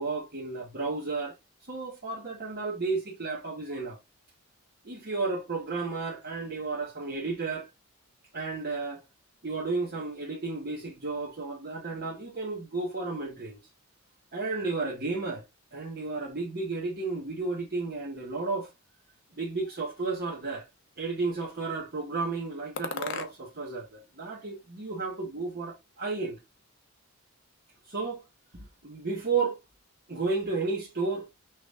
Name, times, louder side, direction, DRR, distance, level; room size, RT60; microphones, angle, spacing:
voice 1, 0.0-1.3 1.7-4.0 4.8-7.7 8.3-9.0 9.4-13.6 14.3-15.4 15.7-18.7 19.3-20.7 21.0-26.4 27.9-28.2 28.5-29.6 30.1-31.3, right 3 dB, 45° right, 1.2 m, -32 dB
sound 1, 19.5-20.6 21.2-21.9 22.8-23.7 24.0-25.0, left 5 dB, 60° left, 0.8 m, -41 dB
6.0 x 3.5 x 2.3 m
head